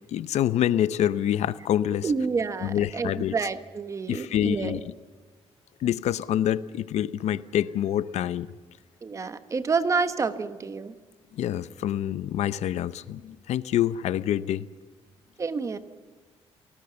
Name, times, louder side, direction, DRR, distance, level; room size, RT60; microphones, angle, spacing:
voice 1, 0.1-2.1 2.6-3.3 4.1-4.8 5.8-8.5 11.3-14.7, left 11 dB, 85° left, 16 dB, 0.7 m, -26 dB
voice 2, 2.0-4.8 9.0-11.0 15.4-15.8, right 4 dB, 30° right, 11 dB, 1.1 m, -28 dB
28.5 x 18.5 x 7.1 m, 1.4 s
wide cardioid pair, 170°, 11 cm